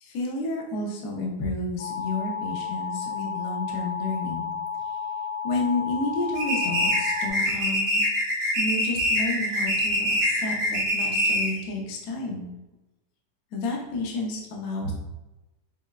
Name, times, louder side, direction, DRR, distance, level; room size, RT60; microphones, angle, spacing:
voice 1, 0.0-4.5 5.4-8.0 8.5-12.5 13.5-14.9, left 2 dB, 65° left, -2 dB, 0.9 m, -31 dB
sound 1, 1.8-7.3, left 5 dB, 80° left, 2.3 m, -32 dB
sound 2, 6.4-11.6, equal, 60° right, 2.0 m, -24 dB
5.6 x 2.1 x 2.3 m, 1.0 s
omnidirectional pair, 2.3 m